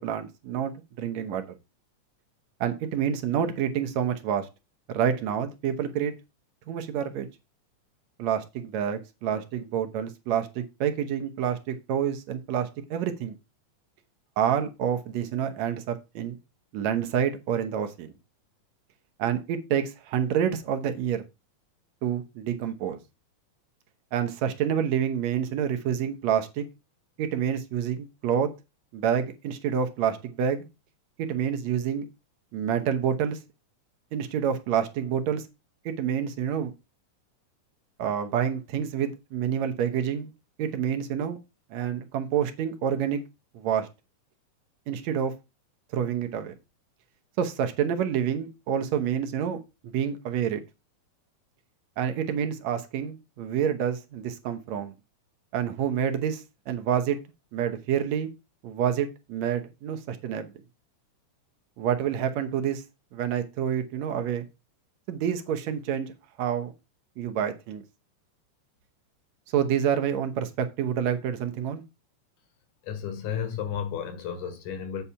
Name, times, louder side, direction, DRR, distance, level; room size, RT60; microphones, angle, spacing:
voice 1, 0.0-1.4 2.6-4.5 4.9-6.1 6.7-7.3 8.2-13.4 14.4-16.4 16.7-18.1 19.2-21.2 22.0-23.0 24.1-26.7 27.2-28.5 28.9-30.7 31.2-32.1 32.5-33.4 34.1-35.5 35.9-36.7 38.0-40.3 40.6-41.4 41.7-43.2 43.5-43.9 44.9-45.3 45.9-46.5 47.4-50.6 52.0-54.9 55.5-57.2 57.5-58.3 58.6-60.5 61.8-62.8 63.1-64.5 65.1-66.1 66.4-66.7 67.2-67.8 69.5-71.8, right 8 dB, 70° right, 2.0 m, -28 dB
voice 2, 72.8-75.0, left 8 dB, 75° left, 2.9 m, -32 dB
8.4 x 4.2 x 5.5 m
omnidirectional pair, 3.7 m